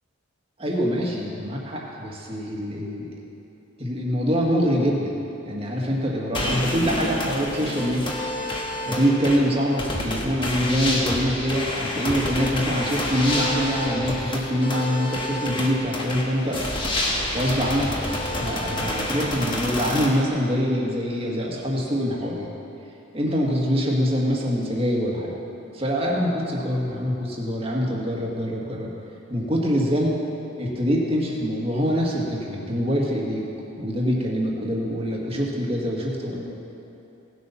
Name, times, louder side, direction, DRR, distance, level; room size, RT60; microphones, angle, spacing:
voice 1, 0.6-3.1 3.8-5.1 5.5-8.1 8.9-16.6 17.3-17.9 18.4-22.5 23.1-25.3 25.7-28.9 29.3-30.2 30.6-33.5 33.8-36.6, equal, 30° right, -2 dB, 1.8 m, -24 dB
sound 1, 6.3-20.1, left 1 dB, 25° left, 1.4 m, -28 dB
17.5 x 8.2 x 5.8 m, 2.9 s
head